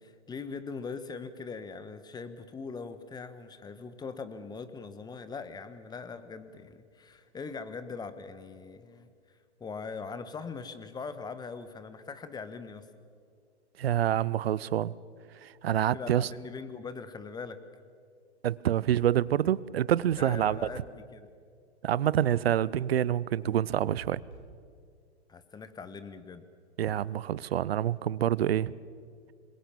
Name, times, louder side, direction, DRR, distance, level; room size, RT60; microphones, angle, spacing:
voice 1, 0.0-9.1 9.6-12.9 15.9-17.6 20.2-21.3 25.3-26.4, left 5 dB, 10° left, 11 dB, 1.3 m, -41 dB
voice 2, 13.8-14.9 15.4-16.3 18.4-20.6 21.8-24.2 26.8-28.7, right 11 dB, 60° right, 21 dB, 0.8 m, -27 dB
sound 1, 20.1-21.1 23.7-24.6, right 3 dB, 80° right, 2.8 m, -50 dB
26.5 x 22.0 x 7.2 m, 2.2 s
figure-of-eight pair, 105°, 34 cm